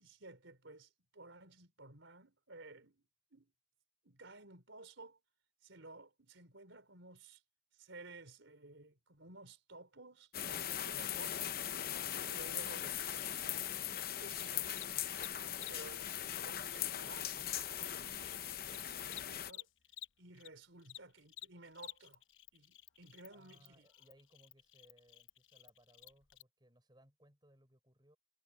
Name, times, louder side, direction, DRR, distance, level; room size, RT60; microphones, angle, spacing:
voice 1, 0.0-3.0 3.3-3.5 4.0-5.2 5.6-7.4 7.7-11.7 12.3-13.0 13.4-13.6 14.1-14.9 15.7-19.7 20.2-22.2 22.5-23.9, right 2 dB, 85° right, 3.9 m, -55 dB
sound 1, 10.3-19.5, left 10 dB, 50° left, 0.8 m, -40 dB
Cricket, 10.9-20.5 20.8-26.4, left 13 dB, 85° left, 1.0 m, -55 dB
voice 2, 23.3-28.2, right 1 dB, 20° right, 6.5 m, -66 dB
head